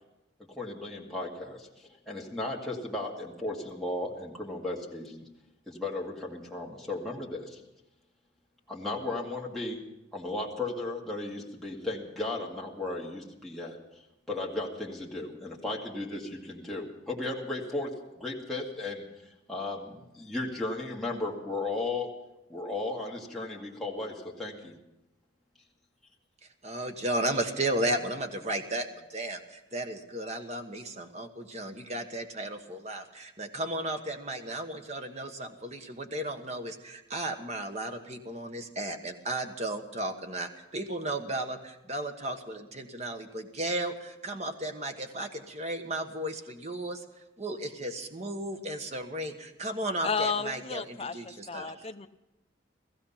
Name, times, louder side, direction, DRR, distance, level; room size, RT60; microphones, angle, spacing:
voice 1, 0.5-5.3 5.7-7.6 8.7-9.8 10.1-13.8 14.3-19.1 19.5-22.1 22.5-24.8, left 2 dB, ahead, -5 dB, 2.2 m, -35 dB
voice 2, 26.6-47.0 47.4-51.9, right 1 dB, 35° right, 5 dB, 1.3 m, -34 dB
voice 3, 50.0-52.1, left 5 dB, 30° left, 9 dB, 0.6 m, -32 dB
16.5 x 15.5 x 5.8 m, 0.92 s
head